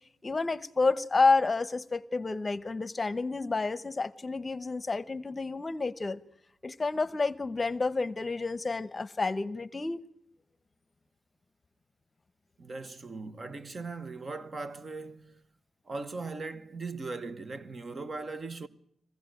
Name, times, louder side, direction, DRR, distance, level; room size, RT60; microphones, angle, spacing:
voice 1, 0.2-6.2 6.6-10.0, left 3 dB, 35° left, 0.9 m, -29 dB
voice 2, 12.6-15.4 15.9-18.7, right 3 dB, 45° right, 1.2 m, -39 dB
22.5 x 16.0 x 9.1 m
wide cardioid pair, 95°, 0 cm